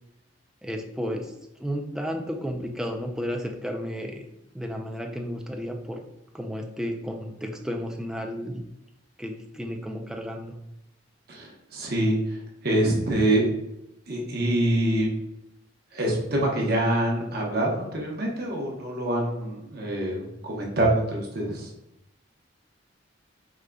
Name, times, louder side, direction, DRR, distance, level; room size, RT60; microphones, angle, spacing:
voice 1, 0.6-1.3 1.6-4.2 4.5-6.0 6.3-8.6 9.2-10.5, equal, 5° right, 2 dB, 0.4 m, -32 dB
voice 2, 11.3-13.5 14.1-15.1 15.9-21.7, right 1 dB, 55° right, -2 dB, 0.9 m, -25 dB
4.9 x 3.7 x 2.2 m, 0.84 s
head